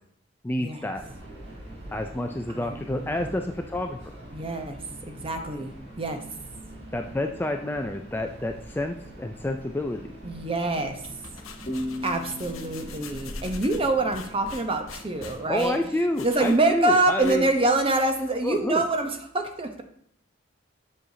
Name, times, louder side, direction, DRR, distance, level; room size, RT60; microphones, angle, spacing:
voice 1, 0.4-1.0 1.9-4.0 6.9-10.1 15.5-17.5 18.4-18.8, left 1 dB, 10° left, 4 dB, 0.3 m, -29 dB
Subway metro underground, 0.9-16.2, right 1 dB, 60° right, 2.4 m, -45 dB
voice 2, 2.5-3.3 4.3-4.8 5.1-6.2 10.2-11.0 12.0-15.8 16.2-19.8, right 2 dB, 25° right, 6 dB, 0.7 m, -26 dB
sound 1, 11.0-17.8, left 3 dB, 90° left, 0.8 m, -43 dB
sound 2, 11.7-15.1, left 1 dB, 35° left, 1.4 m, -38 dB
7.5 x 6.4 x 2.7 m, 0.67 s
head